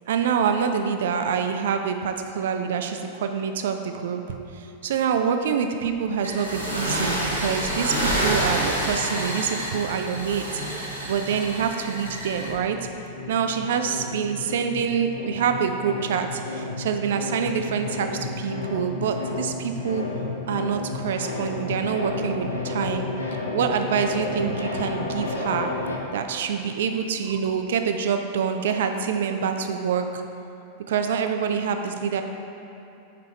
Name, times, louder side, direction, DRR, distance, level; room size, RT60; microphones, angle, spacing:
voice 1, 0.1-12.8 13.3-20.0 20.5-23.1 23.5-25.7 26.1-30.2 30.9-32.2, right 7 dB, 60° right, 6 dB, 0.4 m, -26 dB
sound 1, 6.2-12.5, right 1 dB, 85° right, 1.2 m, -28 dB
sound 2, 8.7-10.8 11.1-26.0, left 3 dB, 80° left, 0.6 m, -33 dB
5.8 x 4.8 x 4.3 m, 2.9 s
figure-of-eight pair, 90°, 0 cm